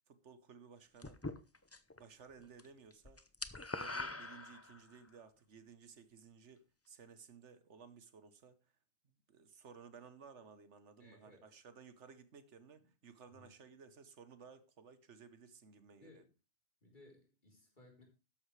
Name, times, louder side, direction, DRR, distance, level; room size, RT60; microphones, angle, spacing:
voice 1, 0.1-1.2 2.0-3.2 3.7-8.6 9.3-16.2, right 6 dB, 85° right, 1.4 m, -57 dB
sound 1, 1.0-2.0 2.3-2.7 2.9-5.0, left 2 dB, 15° left, 0.5 m, -43 dB
voice 2, 11.0-11.5 12.8-12.9 13.3-13.5 15.9-16.3 16.8-18.0, left 2 dB, 45° left, 4.1 m, -62 dB
13.0 x 10.5 x 3.3 m
omnidirectional pair, 1.2 m